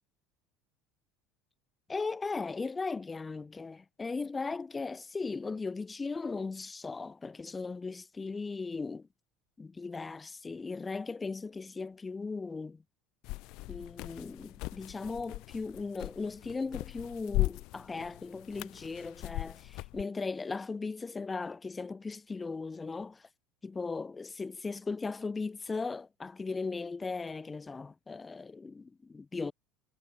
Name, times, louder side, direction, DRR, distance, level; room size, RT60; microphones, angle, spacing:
voice 1, 1.9-9.1 9.6-12.8 13.7-23.3 23.6-29.5, left 4 dB, 20° left, 0.8 m, -37 dB
sound 1, 13.2-20.0, left 22 dB, 65° left, 2.2 m, -38 dB
supercardioid pair, 95°, 0 cm